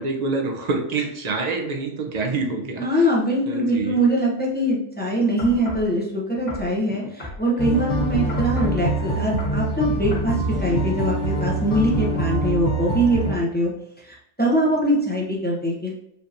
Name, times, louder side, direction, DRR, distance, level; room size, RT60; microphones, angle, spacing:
voice 1, 0.0-3.1 3.5-4.0, right 3 dB, 50° right, 2 dB, 0.5 m, -26 dB
voice 2, 2.8-13.7 14.0-15.9, equal, 10° left, -4 dB, 0.6 m, -22 dB
sound 1, 5.4-5.9 6.5-7.8 8.3-8.8 9.2-9.6 10.1-10.3 11.0-11.1, left 2 dB, 50° left, 1.7 m, -35 dB
sound 2, 7.6-13.3, right 2 dB, 75° left, 1.5 m, -24 dB
4.4 x 2.8 x 2.5 m, 0.77 s
omnidirectional pair, 1.2 m